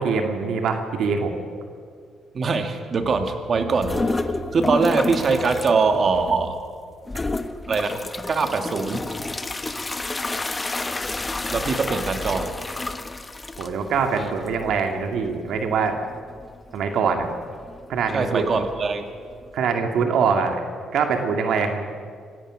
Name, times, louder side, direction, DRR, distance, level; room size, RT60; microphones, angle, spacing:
voice 1, 0.0-1.3 13.6-16.0 16.7-17.3 17.9-18.5 19.5-20.6 20.9-21.8, right 5 dB, 75° right, 4 dB, 2.2 m, -23 dB
voice 2, 2.3-6.6 7.7-8.0 8.3-9.1 11.5-12.5 14.2-14.3 18.1-19.0, right 4 dB, 45° right, 6 dB, 2.1 m, -22 dB
sound 1, 3.8-5.7 6.1-6.6 7.1-19.7, left 2 dB, 20° left, 1.1 m, -30 dB
25.5 x 16.5 x 6.3 m, 2.1 s
cardioid pair, 90°, 0 cm